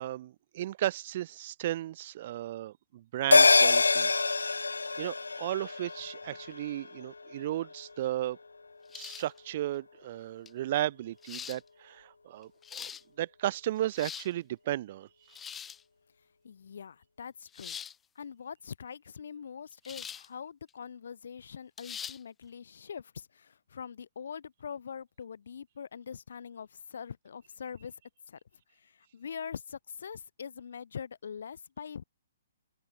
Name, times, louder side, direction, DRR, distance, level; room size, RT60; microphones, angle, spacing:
voice 1, 0.0-4.2 5.0-8.4 8.9-12.9 13.2-15.1, right 13 dB, 45° right, 0.8 m, -34 dB
sound 1, 3.3-8.0 8.3-8.4, left 3 dB, 80° left, 0.8 m, -26 dB
sound 2, 8.9-9.4 10.5-10.6 11.2-11.6 12.4-13.0 13.8-14.3 15.3-15.8 17.5-18.0 19.9-20.3 20.7-20.8 21.8-22.2, left 8 dB, 15° left, 1.0 m, -42 dB
voice 2, 16.4-17.8 18.1-28.0 28.3-28.4 28.7-32.0, left 7 dB, 60° left, 2.9 m, -43 dB
figure-of-eight pair, 125°, 0 cm